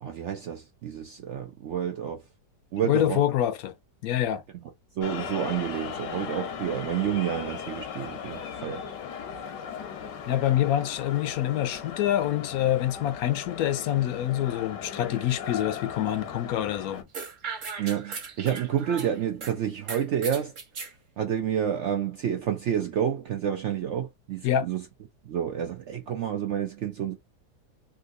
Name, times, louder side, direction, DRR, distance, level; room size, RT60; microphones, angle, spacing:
voice 1, 0.0-2.2 2.7-3.2 4.9-8.8 17.8-20.5 21.2-24.8 25.2-27.2, right 9 dB, 85° right, 0.6 m, -29 dB
voice 2, 2.8-3.7 4.0-4.4 10.3-17.0 24.4-24.7, left 12 dB, 70° left, 0.9 m, -26 dB
sound 1, 5.0-17.0, left 7 dB, 90° left, 1.6 m, -38 dB
sound 2, 17.1-19.5 19.9-20.9, right 5 dB, 50° right, 1.3 m, -37 dB
3.5 x 2.6 x 2.5 m
omnidirectional pair, 1.8 m